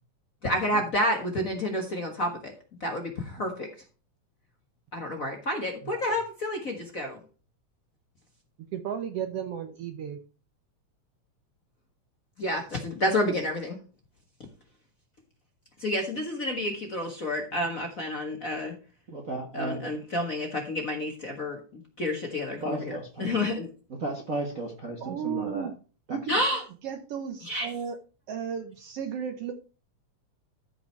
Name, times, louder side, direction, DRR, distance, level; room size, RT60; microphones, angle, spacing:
voice 1, 0.4-2.5 2.8-3.7 4.9-7.2 12.4-13.8 15.8-18.7 19.5-21.6 22.0-23.7 26.3-26.6 27.4-27.7, left 1 dB, 40° left, 3 dB, 1.4 m, -29 dB
voice 2, 8.6-10.2 25.0-25.7 26.1-26.4 26.8-28.0 28.3-29.5, right 7 dB, 70° right, 7 dB, 1.6 m, -34 dB
voice 3, 19.1-19.9 22.6-23.3 23.9-25.7 26.1-26.2, right 2 dB, 40° right, 0 dB, 1.2 m, -34 dB
13.5 x 5.0 x 4.5 m, 0.36 s
omnidirectional pair, 3.3 m